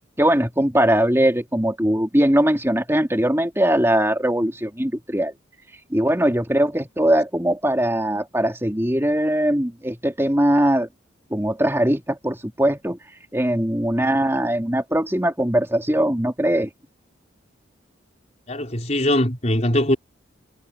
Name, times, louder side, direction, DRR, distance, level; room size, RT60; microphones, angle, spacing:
voice 1, 0.2-5.3 5.9-10.9 11.3-13.0 13.3-16.7, right 1 dB, 10° right, 2.9 m, -20 dB
voice 2, 18.5-20.0, left 1 dB, 35° left, 4.9 m, -21 dB
head